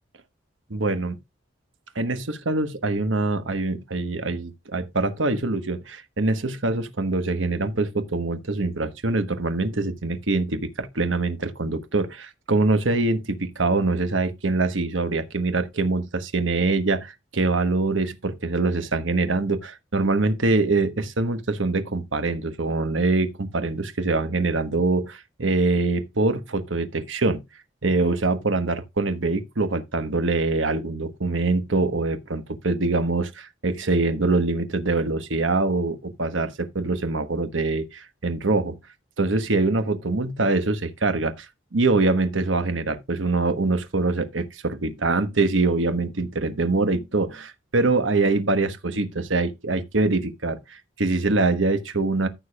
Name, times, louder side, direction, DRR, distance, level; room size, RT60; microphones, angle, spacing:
voice 1, 0.7-1.2 1.9-27.4 27.8-38.8 39.2-52.3, right 3 dB, 90° right, 1.2 m, -24 dB
14.0 x 6.8 x 2.3 m
head